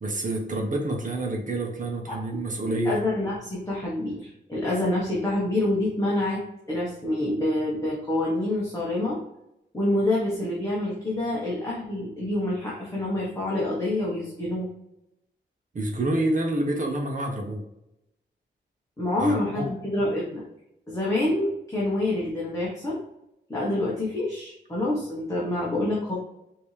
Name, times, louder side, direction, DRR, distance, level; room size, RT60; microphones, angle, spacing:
voice 1, 0.0-3.0 15.7-17.7 19.2-19.7, right 1 dB, 45° right, 1 dB, 1.0 m, -28 dB
voice 2, 2.8-6.4 6.7-9.2 9.7-14.7 19.0-20.4 20.9-23.0 23.5-26.2, left 1 dB, 15° left, -7 dB, 1.1 m, -27 dB
5.2 x 2.9 x 3.2 m, 0.84 s
wide cardioid pair, 165°, 19 cm